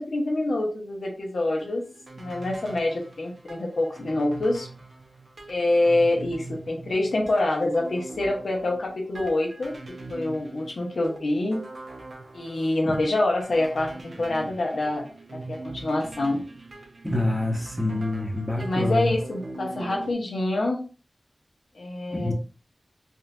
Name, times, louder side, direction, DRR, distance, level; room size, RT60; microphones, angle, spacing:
voice 1, 0.0-1.8 2.2-4.7 5.5-9.8 10.1-11.6 12.3-15.1 15.5-16.4 18.6-20.8 21.7-22.3, left 2 dB, 85° left, 0 dB, 0.8 m, -26 dB
sound 1, 1.5-20.1, right 3 dB, 65° right, 0.8 m, -42 dB
voice 2, 17.0-19.1 22.1-22.3, left 1 dB, 5° left, 2 dB, 0.8 m, -26 dB
3.6 x 2.6 x 2.3 m, 0.36 s
cardioid pair, 40°, 0 cm